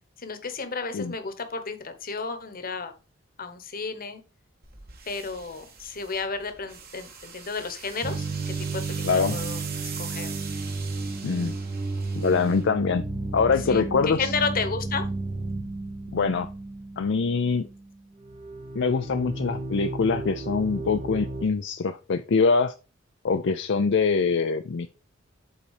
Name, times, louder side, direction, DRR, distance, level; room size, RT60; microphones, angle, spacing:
voice 1, 0.2-2.9 3.4-4.2 5.1-9.6 10.0-10.4 13.7-15.1, left 4 dB, 45° left, 9 dB, 1.2 m, -32 dB
sound 1, 4.6-13.3, right 6 dB, 50° right, 1.7 m, -42 dB
sound 2, 8.0-18.0 18.2-21.5, right 3 dB, 30° right, 0.8 m, -33 dB
voice 2, 9.0-9.4 11.2-11.6 12.2-13.0 13.3-14.3 16.1-16.5 17.0-17.7 18.7-22.7 23.2-24.9, left 4 dB, 65° left, 8 dB, 0.5 m, -24 dB
8.2 x 4.2 x 4.8 m, 0.32 s
head